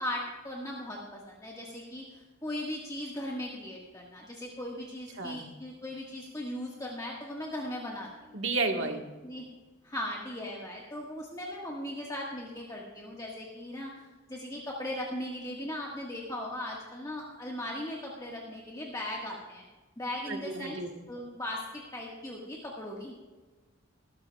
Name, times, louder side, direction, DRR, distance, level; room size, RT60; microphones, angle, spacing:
voice 1, 0.0-8.4 8.8-8.9 9.2-9.4 9.8-19.6 20.0-20.8 21.1-23.1, left 1 dB, 15° left, -3 dB, 1.6 m, -38 dB
voice 2, 8.3-9.0 20.3-20.9, right 3 dB, 70° right, 3 dB, 1.6 m, -31 dB
20.5 x 12.5 x 2.4 m, 1.2 s
head